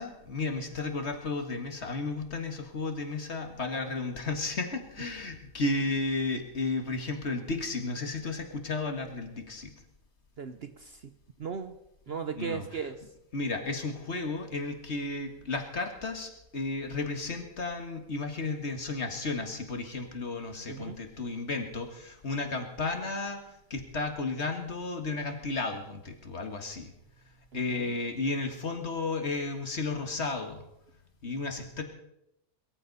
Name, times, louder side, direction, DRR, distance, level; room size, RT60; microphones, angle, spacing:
voice 1, 0.0-9.7 12.3-12.6 13.3-23.4 23.7-26.9 27.5-30.6 31.2-31.8, left 3 dB, 50° left, 5 dB, 2.1 m, -33 dB
voice 2, 10.4-11.1 11.4-11.8 12.1-13.0 20.7-21.0 27.5-27.9, right 6 dB, 50° right, 9 dB, 0.9 m, -37 dB
22.5 x 14.0 x 4.1 m, 0.84 s
omnidirectional pair, 1.5 m